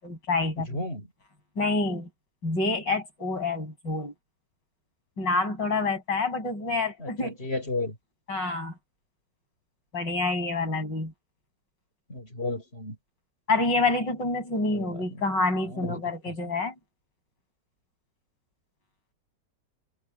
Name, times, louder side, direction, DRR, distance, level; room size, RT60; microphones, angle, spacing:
voice 1, 0.0-0.8 1.6-2.1 2.4-4.1 5.2-7.4 8.3-8.7 9.9-11.1 13.5-16.7, left 3 dB, 75° left, 8.4 m, -27 dB
voice 2, 0.6-1.1 7.0-7.9 12.1-13.0 14.7-15.2 15.6-16.0, left 2 dB, 35° left, 7.1 m, -33 dB
omnidirectional pair, 1.9 m